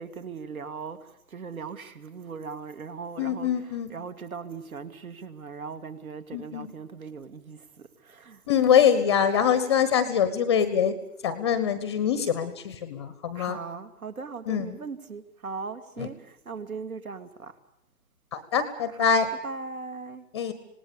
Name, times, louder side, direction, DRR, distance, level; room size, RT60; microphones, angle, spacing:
voice 1, 0.0-8.4 13.3-17.6 19.0-20.2, right 5 dB, 55° right, 2.6 m, -39 dB
voice 2, 3.2-3.9 6.3-6.7 8.5-10.9 11.2-13.6 14.5-14.8 16.0-16.1 18.3-19.3 20.3-20.5, left 8 dB, 15° left, 0.9 m, -24 dB
26.5 x 19.0 x 6.9 m
figure-of-eight pair, 145°, 49 cm